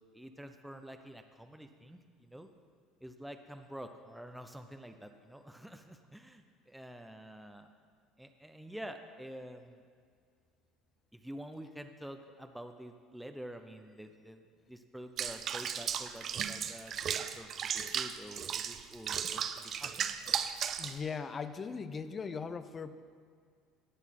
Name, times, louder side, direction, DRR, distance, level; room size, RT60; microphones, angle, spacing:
voice 1, 0.1-2.5 3.0-7.7 8.2-9.8 11.1-14.4 14.7-16.9 17.4-20.0, equal, 5° right, 6 dB, 0.8 m, -48 dB
Water / Bathtub (filling or washing), 15.2-21.0, right 8 dB, 45° right, 0.6 m, -35 dB
voice 2, 20.8-23.0, left 5 dB, 30° left, 12 dB, 0.7 m, -39 dB
18.0 x 6.1 x 5.9 m, 2.1 s
supercardioid pair, 95°, 0 cm